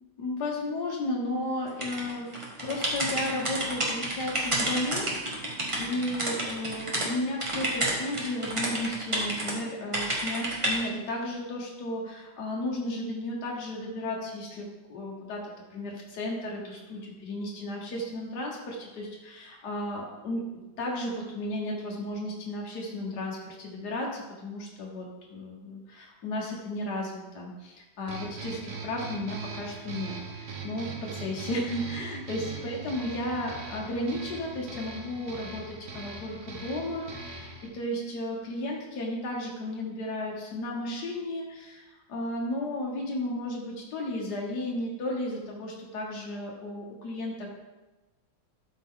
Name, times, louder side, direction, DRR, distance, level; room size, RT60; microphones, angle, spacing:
voice 1, 0.2-2.3 2.6-5.1 5.8-20.4 20.8-47.5, left 1 dB, 70° left, -2 dB, 1.7 m, -34 dB
sound 1, 1.8-7.1 7.4-9.5 9.9-10.8, right 1 dB, 20° right, 1.3 m, -30 dB
sound 2, 28.1-37.7, right 4 dB, 70° right, 1.6 m, -40 dB
12.0 x 4.4 x 3.7 m, 1.1 s
omnidirectional pair, 1.8 m